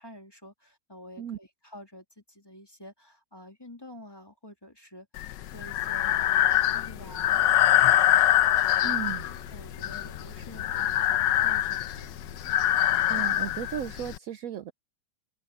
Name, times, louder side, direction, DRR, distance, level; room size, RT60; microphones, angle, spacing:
voice 1, 0.0-5.1 5.5-8.3 8.6-12.2, left 1 dB, 10° left, 2.8 m, -49 dB
Breathing, 5.2-14.2, left 12 dB, 80° left, 1.3 m, -24 dB
sound 1, 5.9-13.2, left 3 dB, 50° left, 4.8 m, -48 dB
voice 2, 8.8-9.2 13.1-14.7, right 10 dB, 70° right, 0.8 m, -35 dB
omnidirectional pair, 2.0 m